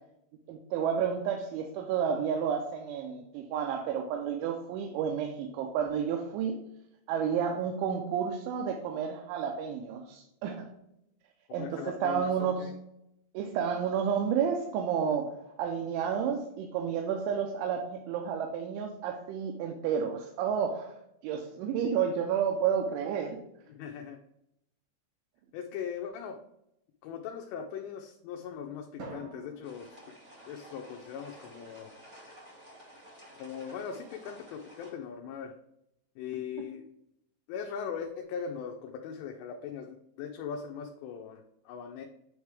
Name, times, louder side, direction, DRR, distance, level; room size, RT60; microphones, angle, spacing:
voice 1, 0.5-6.7 7.1-10.7 11.5-12.7 13.3-20.9 21.2-23.4, right 7 dB, 85° right, 2 dB, 3.1 m, -31 dB
voice 2, 11.6-12.7 23.7-24.2 25.5-26.4 27.0-30.0 30.5-31.9 33.3-35.6 36.2-36.9 37.5-42.1, left 7 dB, 80° left, 2 dB, 2.6 m, -40 dB
Drum, 29.0-31.3, right 3 dB, 65° right, 1.8 m, -49 dB
sound 1, 29.6-34.9, equal, 45° right, 0.9 m, -52 dB
9.3 x 3.2 x 3.4 m, 0.80 s
omnidirectional pair, 5.3 m